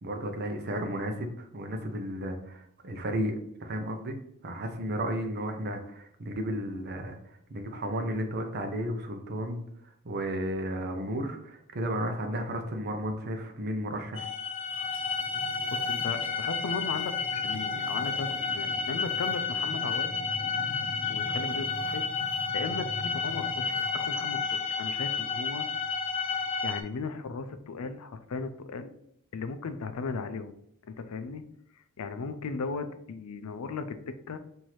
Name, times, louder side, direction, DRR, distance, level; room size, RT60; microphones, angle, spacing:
voice 1, 0.0-4.2 4.4-7.1 7.5-9.6 10.0-14.3, right 1 dB, 50° right, 5 dB, 0.7 m, -33 dB
sound 1, 14.2-26.8, left 5 dB, 25° left, 0.6 m, -31 dB
voice 2, 15.7-20.1 21.1-22.1 22.5-24.4 24.8-25.7 26.3-28.9 29.3-30.6 30.9-31.4 31.8-34.4, left 4 dB, 75° left, 10 dB, 0.4 m, -37 dB
5.7 x 2.7 x 3.1 m, 0.71 s
head